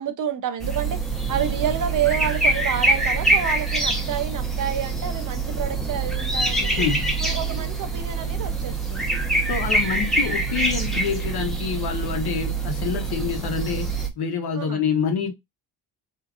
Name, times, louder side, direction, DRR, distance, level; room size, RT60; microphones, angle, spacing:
voice 1, 0.0-6.7 7.2-9.2 14.5-14.8, right 9 dB, 45° right, 0.6 m, -29 dB
sound 1, 0.6-14.1, right 2 dB, ahead, 0.7 m, -25 dB
voice 2, 6.6-7.2 9.4-15.3, left 6 dB, 60° left, 1.0 m, -27 dB
3.6 x 2.7 x 2.3 m
cardioid pair, 125°, 43 cm